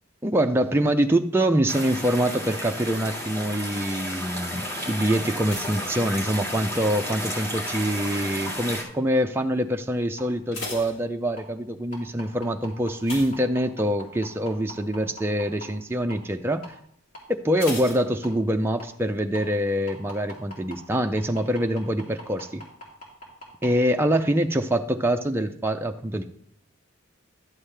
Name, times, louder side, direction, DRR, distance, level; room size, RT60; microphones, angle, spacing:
voice 1, 0.2-16.6 17.4-22.6 23.6-26.2, right 1 dB, 10° right, 4 dB, 0.4 m, -25 dB
sound 1, 1.7-8.8, equal, 15° left, 1.9 m, -32 dB
sound 2, 5.4-6.9 7.2-7.7 8.3-8.7 8.9-9.0 9.4-9.5 10.2-11.7 13.0-14.1 14.5-14.8 15.1-15.2 17.6-18.8 19.0-19.1, left 2 dB, 90° left, 3.6 m, -39 dB
sound 3, 10.2-10.3 10.8-10.9 11.4-11.5 11.9-15.7 16.1-16.2 16.6-16.7 17.1-17.2 17.7-17.8 18.2-18.3 18.8-18.9 19.3-19.4 19.9-23.7 24.1-24.2, left 1 dB, 40° left, 3.3 m, -40 dB
11.5 x 7.3 x 3.3 m, 0.67 s
head